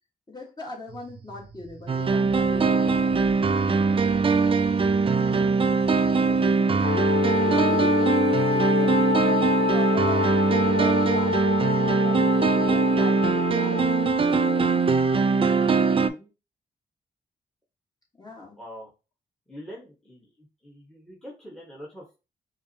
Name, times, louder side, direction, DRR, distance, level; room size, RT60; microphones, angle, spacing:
voice 1, 0.3-3.1 6.2-11.6 12.0-13.8 14.3-14.7 18.2-18.6, left 2 dB, 20° left, -2 dB, 1.6 m, -40 dB
sound 1, 0.9-6.6, right 4 dB, 50° right, 0.7 m, -46 dB
sound 2, 1.9-16.1, right 4 dB, 30° right, 0.4 m, -22 dB
Wind instrument woodwind instrument, 6.8-14.8, left 7 dB, 60° left, 0.4 m, -27 dB
voice 2, 15.6-16.3 18.6-18.9 19.5-22.2, equal, 5° left, -4 dB, 1.3 m, -44 dB
4.6 x 2.2 x 2.8 m, 0.30 s
supercardioid pair, 55°, 20 cm